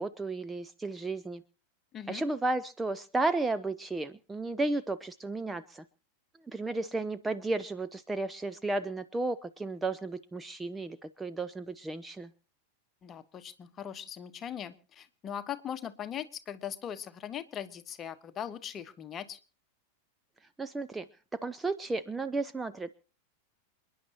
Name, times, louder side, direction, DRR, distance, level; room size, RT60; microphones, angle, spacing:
voice 1, 0.0-1.4 2.1-5.8 6.5-12.3 20.6-21.1 21.3-22.9, right 2 dB, 10° right, 11 dB, 0.6 m, -33 dB
voice 2, 13.0-19.4, left 9 dB, 25° left, 10 dB, 1.3 m, -40 dB
28.5 x 10.5 x 2.9 m, 0.38 s
figure-of-eight pair, 90°, 0 cm